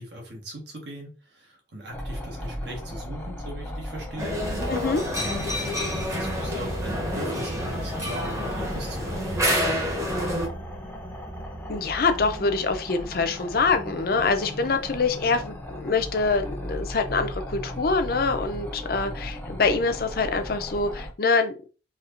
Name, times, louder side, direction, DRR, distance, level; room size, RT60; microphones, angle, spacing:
voice 1, 0.0-4.4 5.2-9.6, equal, 70° right, 0 dB, 1.4 m, -40 dB
sound 1, 1.9-21.1, left 1 dB, 10° left, 0.6 m, -37 dB
sound 2, 4.2-10.5, equal, 15° right, 0.9 m, -28 dB
voice 2, 4.7-5.0 11.7-21.7, left 4 dB, 55° left, 7 dB, 0.5 m, -25 dB
4.2 x 2.9 x 2.6 m, 0.35 s
head